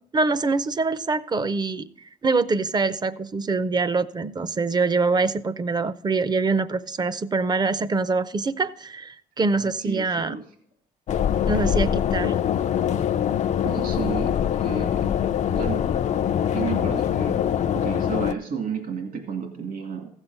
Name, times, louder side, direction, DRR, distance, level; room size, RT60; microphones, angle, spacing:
voice 1, 0.1-1.9 2.2-10.3 11.5-12.3, right 3 dB, 25° right, 0.6 m, -24 dB
voice 2, 9.6-10.4 13.6-15.1 15.5-15.8 16.5-20.1, right 6 dB, 60° right, 2.2 m, -32 dB
sound 1, 11.1-18.3, left 9 dB, 45° left, 0.4 m, -23 dB
15.0 x 7.3 x 4.0 m
supercardioid pair, 75°, 16 cm